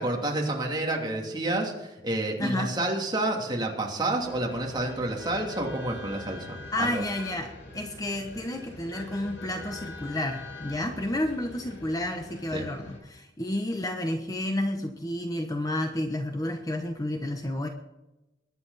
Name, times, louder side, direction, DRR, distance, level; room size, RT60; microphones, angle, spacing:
voice 1, 0.0-7.0 12.5-12.7, right 2 dB, 25° right, 0 dB, 2.9 m, -29 dB
voice 2, 2.4-2.7 6.7-17.7, left 1 dB, 20° left, 5 dB, 1.1 m, -31 dB
sound 1, 4.2-13.0, left 2 dB, 90° left, 5.6 m, -43 dB
22.0 x 9.8 x 4.2 m, 0.96 s
head